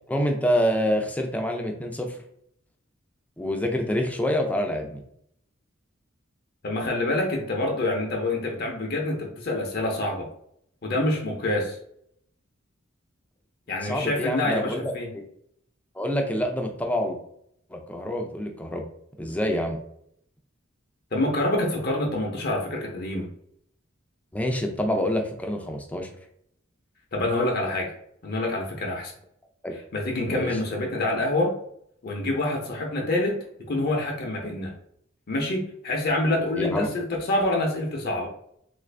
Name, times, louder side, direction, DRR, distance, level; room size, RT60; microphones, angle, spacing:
voice 1, 0.1-2.1 3.4-5.0 13.8-15.2 16.0-17.2 17.7-18.9 19.2-19.8 24.3-26.1 29.6-29.7 30.3-30.5 36.6-36.9, equal, 5° left, 3 dB, 0.4 m, -26 dB
voice 2, 6.6-10.3 10.8-11.8 13.7-15.1 21.1-23.3 27.1-27.9 28.2-29.1 29.9-31.5 32.0-33.4 33.7-34.7 35.3-38.3, left 2 dB, 50° left, 0 dB, 0.6 m, -26 dB
3.2 x 2.5 x 3.2 m, 0.70 s
head